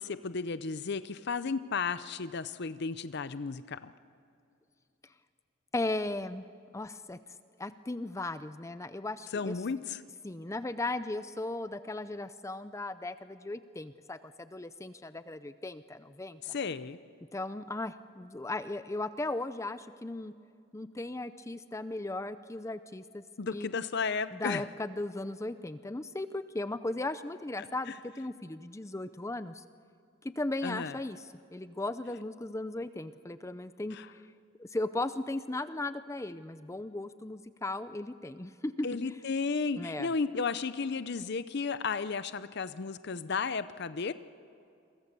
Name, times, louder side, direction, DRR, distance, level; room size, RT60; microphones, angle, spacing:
voice 1, 0.0-3.9 9.3-10.0 16.4-17.0 23.4-24.6 30.6-31.0 33.9-34.1 38.8-44.1, left 4 dB, 55° left, 13 dB, 0.6 m, -33 dB
voice 2, 5.7-6.4 6.7-7.2 7.6-9.6 10.2-16.5 17.3-20.3 20.7-23.2 23.5-23.7 24.3-29.6 30.2-34.2 34.6-39.2 39.8-40.1, left 2 dB, 15° left, 12 dB, 0.5 m, -37 dB
29.0 x 23.0 x 6.9 m, 2.4 s
head